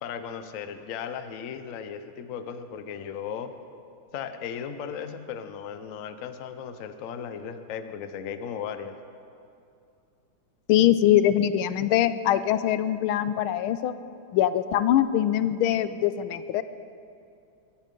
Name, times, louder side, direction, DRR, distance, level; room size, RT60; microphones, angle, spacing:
voice 1, 0.0-3.5 4.1-9.0, left 7 dB, 60° left, 9 dB, 0.8 m, -36 dB
voice 2, 10.7-13.9 14.3-16.6, left 11 dB, 85° left, 13 dB, 1.5 m, -23 dB
22.5 x 10.0 x 5.3 m, 2.5 s
omnidirectional pair, 2.3 m